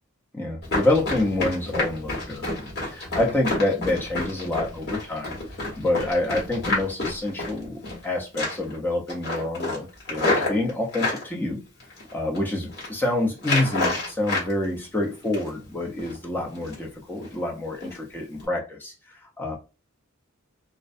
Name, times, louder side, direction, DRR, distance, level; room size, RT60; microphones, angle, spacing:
voice 1, 0.3-5.3 5.8-11.6 12.1-19.6, left 2 dB, 10° left, -1 dB, 0.5 m, -27 dB
Run, 0.6-8.0 8.3-8.8 9.1-11.2 11.8-12.4 12.6-12.9 13.4-14.5 14.8-15.6 16.0-16.2 16.6-16.9 17.2-17.4 17.8-18.0 18.3-18.5, left 2 dB, 55° left, 1.2 m, -28 dB
2.4 x 2.1 x 2.5 m, 0.30 s
head